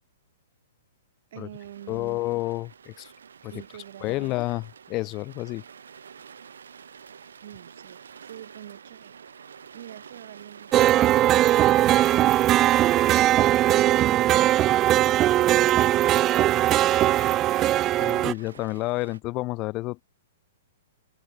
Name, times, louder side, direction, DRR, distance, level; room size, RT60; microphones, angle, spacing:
voice 1, 1.3-2.2 3.5-4.3 7.4-9.1 9.7-13.3, right 12 dB, 60° right, 5.7 m, -46 dB
sound 1, 1.5-19.2, right 7 dB, 90° right, 7.9 m, -49 dB
voice 2, 1.9-3.1 3.4-3.5 4.0-5.6 18.0-20.0, left 20 dB, 30° left, 1.0 m, -30 dB
sound 2, 10.7-18.3, right 14 dB, 25° right, 0.4 m, -20 dB
hypercardioid pair, 145°, 0 cm